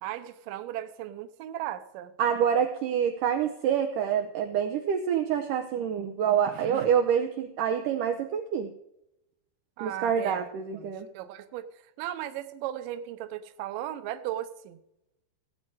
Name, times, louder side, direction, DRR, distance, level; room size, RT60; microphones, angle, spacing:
voice 1, 0.0-2.1 6.5-6.9 9.8-10.4 10.7-11.7 12.0-14.8, right 12 dB, 75° right, 9 dB, 2.1 m, -36 dB
voice 2, 2.2-8.7 9.8-11.1, right 8 dB, 90° right, 4 dB, 1.8 m, -27 dB
17.0 x 8.5 x 4.8 m, 0.83 s
omnidirectional pair, 4.8 m